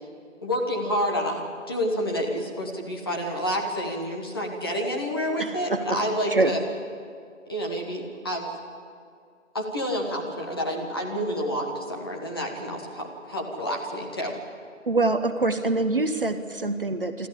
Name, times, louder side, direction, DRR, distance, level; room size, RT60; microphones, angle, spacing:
voice 1, 0.4-6.6 7.5-8.5 9.5-14.3, equal, 20° left, 0 dB, 1.4 m, -29 dB
voice 2, 5.4-6.0 6.3-6.5 14.9-17.3, right 2 dB, 45° right, 8 dB, 1.0 m, -25 dB
26.0 x 13.5 x 8.4 m, 2.3 s
figure-of-eight pair, 165°, 39 cm